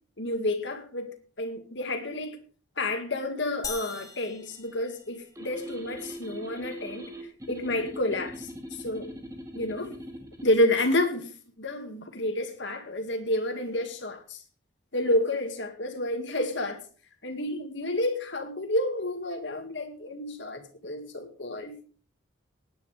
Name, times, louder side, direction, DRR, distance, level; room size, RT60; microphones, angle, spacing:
voice 1, 0.2-2.4 2.8-7.1 7.5-9.1 9.5-9.9 10.4-11.3 11.6-14.4 14.9-16.8 17.2-21.8, left 1 dB, 65° left, 5 dB, 2.1 m, -30 dB
sound 1, 3.6-5.6, left 5 dB, 20° left, 1.4 m, -41 dB
sound 2, 5.4-10.6, equal, 15° right, 2.1 m, -41 dB
19.0 x 9.7 x 3.4 m, 0.39 s
head